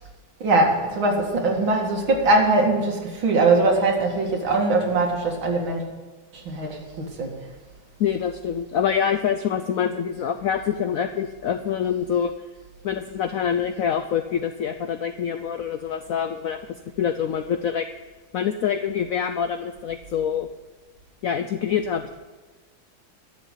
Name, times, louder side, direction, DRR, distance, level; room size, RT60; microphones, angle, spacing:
voice 1, 0.4-5.8 6.3-7.4, right 2 dB, 85° right, 1 dB, 2.7 m, -21 dB
voice 2, 8.0-12.3 12.8-17.9 18.3-20.5 21.2-22.1, left 8 dB, 85° left, 8 dB, 0.7 m, -25 dB
12.0 x 7.1 x 8.0 m, 1.3 s
omnidirectional pair, 2.1 m